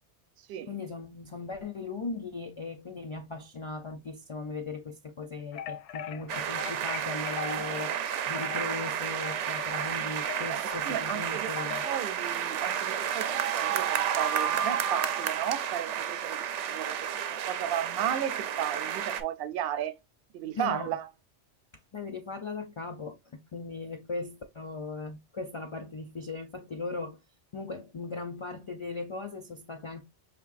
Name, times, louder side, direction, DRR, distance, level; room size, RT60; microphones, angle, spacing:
voice 1, 0.7-11.8 20.6-20.9 21.9-27.2 27.5-30.0, left 3 dB, 40° left, 0.4 m, -38 dB
sound 1, 5.5-12.1, left 9 dB, 80° left, 0.9 m, -42 dB
sound 2, 6.3-19.2, right 9 dB, 90° right, 0.9 m, -31 dB
voice 2, 10.5-11.5 11.8-19.9 20.3-21.1, right 10 dB, 65° right, 0.7 m, -34 dB
5.1 x 3.1 x 2.4 m
omnidirectional pair, 1.2 m